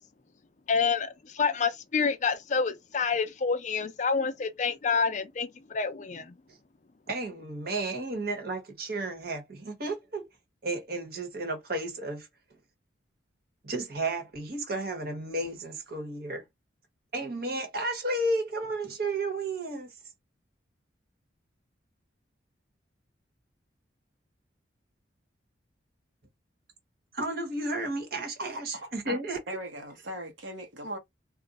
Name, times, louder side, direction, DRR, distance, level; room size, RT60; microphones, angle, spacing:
voice 1, 0.7-6.3, left 5 dB, 40° left, 0.4 m, -28 dB
voice 2, 7.1-10.3 10.6-12.3 13.6-16.4 17.1-19.9 27.1-29.4, right 2 dB, 50° right, 1.1 m, -32 dB
voice 3, 28.4-29.2 29.5-31.0, right 1 dB, 85° right, 1.0 m, -39 dB
2.4 x 2.2 x 4.0 m
head